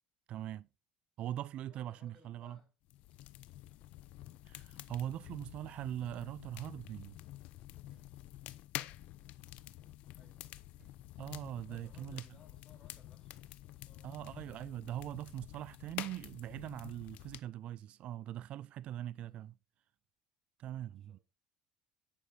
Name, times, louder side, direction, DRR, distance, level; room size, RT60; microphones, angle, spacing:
voice 1, 0.3-0.7 1.2-2.6 4.5-7.2 11.2-12.2 14.0-19.5 20.6-21.2, right 12 dB, 55° right, 0.3 m, -42 dB
voice 2, 1.6-2.7 5.3-5.4 10.2-10.6 11.7-14.7 19.2-19.5 20.8-21.2, left 3 dB, 25° left, 3.1 m, -65 dB
sound 1, 2.9-17.4, left 15 dB, 65° left, 0.5 m, -49 dB
sound 2, 7.9-8.8 10.8-11.7, right 7 dB, 30° right, 4.4 m, -72 dB
10.0 x 5.3 x 3.8 m
supercardioid pair, 100°, 2 cm